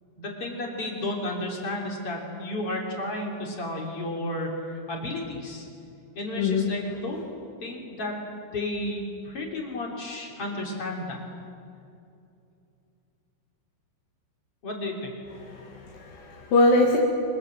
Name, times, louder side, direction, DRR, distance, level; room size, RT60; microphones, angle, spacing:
voice 1, 0.2-5.7 6.2-7.2 7.6-8.2 8.5-11.2 14.6-15.1, left 1 dB, 30° left, 0 dB, 3.6 m, -32 dB
voice 2, 6.4-6.7 15.4-17.0, left 2 dB, 55° left, -2 dB, 3.3 m, -23 dB
26.0 x 25.5 x 7.5 m, 2.6 s
omnidirectional pair, 5.8 m